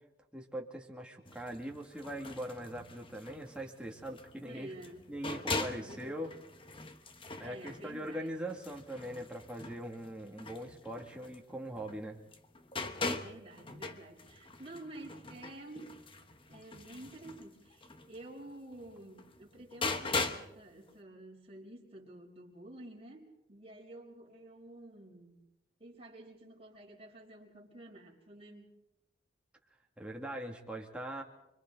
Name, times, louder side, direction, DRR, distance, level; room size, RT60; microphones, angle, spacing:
voice 1, 0.3-4.7 5.1-6.3 7.4-12.2 30.0-31.2, right 1 dB, 5° right, 0 dB, 2.2 m, -41 dB
sound 1, 1.2-12.0 12.3-20.5 20.9-21.0, left 3 dB, 30° left, 1.1 m, -41 dB
voice 2, 4.3-5.1 5.6-6.1 7.1-8.7 13.1-15.9 16.5-25.4 25.8-28.7, right 1 dB, 35° right, 0 dB, 4.5 m, -50 dB
30.0 x 23.5 x 3.9 m, 0.91 s
head